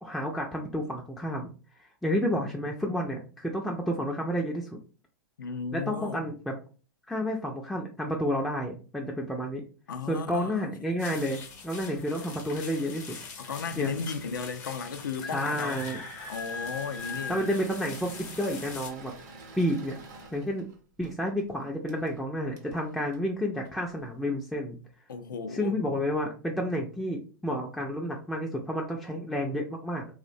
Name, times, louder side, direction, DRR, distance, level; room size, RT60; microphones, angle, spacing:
voice 1, 0.0-1.5 1.8-4.8 5.7-6.6 7.1-9.6 10.1-13.1 13.8-13.9 15.3-16.0 17.3-19.1 19.6-20.0 20.3-20.7 21.0-24.8 25.5-30.1, equal, ahead, 0.3 m, -30 dB
voice 2, 5.4-6.2 9.9-11.0 13.4-15.8 16.3-17.5 25.1-25.7, left 5 dB, 80° left, 0.4 m, -35 dB
sound 1, 11.0-18.9, left 5 dB, 55° left, 0.7 m, -41 dB
Engine / Mechanisms, 15.7-24.1, right 3 dB, 60° right, 0.6 m, -48 dB
2.5 x 2.1 x 2.5 m
hypercardioid pair, 105°, 10 cm